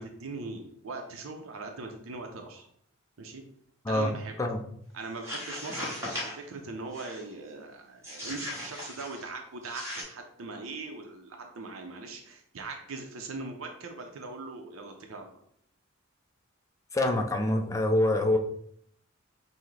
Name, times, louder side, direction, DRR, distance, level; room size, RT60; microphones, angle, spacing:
voice 1, 0.0-2.6 3.2-3.4 3.9-4.4 4.9-15.4, right 3 dB, 70° right, 3 dB, 0.6 m, -40 dB
voice 2, 3.9-4.6 16.9-18.4, left 1 dB, 15° left, 4 dB, 0.4 m, -26 dB
sound 1, 5.1-6.4 6.9-7.3 8.0-9.3 9.6-10.0, left 1 dB, 15° right, 1.2 m, -38 dB
5.8 x 2.1 x 3.2 m, 0.68 s
head